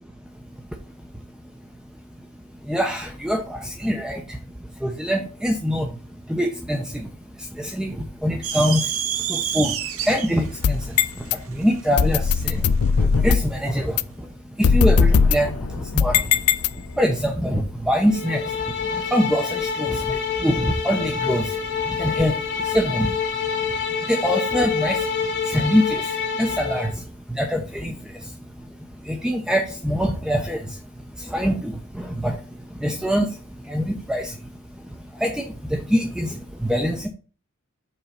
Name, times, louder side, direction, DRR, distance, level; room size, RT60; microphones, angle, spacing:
voice 1, 2.5-6.0 6.3-37.1, equal, 5° right, 3 dB, 0.7 m, -25 dB
sound 1, 8.4-12.9, right 9 dB, 65° right, 0.9 m, -29 dB
sound 2, 10.5-11.3 12.0-13.6 14.0-14.1 14.6-17.1, left 5 dB, 70° left, 0.5 m, -19 dB
sound 3, 18.1-26.9, left 6 dB, 50° left, 1.5 m, -27 dB
5.8 x 4.6 x 5.5 m, 0.37 s
head